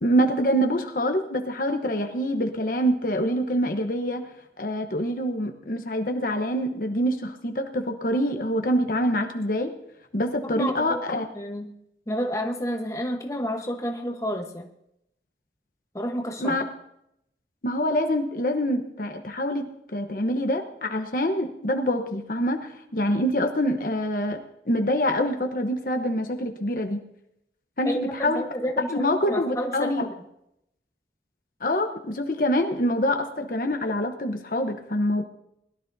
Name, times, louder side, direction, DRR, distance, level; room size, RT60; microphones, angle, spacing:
voice 1, 0.0-4.2 4.6-9.7 10.1-11.2 16.4-16.6 17.6-19.7 19.9-24.4 24.7-27.0 27.8-28.4 28.9-30.1 31.6-35.2, equal, 50° left, 5 dB, 1.0 m, -25 dB
voice 2, 10.4-11.0 11.3-11.7 12.1-14.7 15.9-16.6 27.8-30.1, equal, 20° left, 3 dB, 1.1 m, -30 dB
21.0 x 12.5 x 2.7 m, 0.79 s
head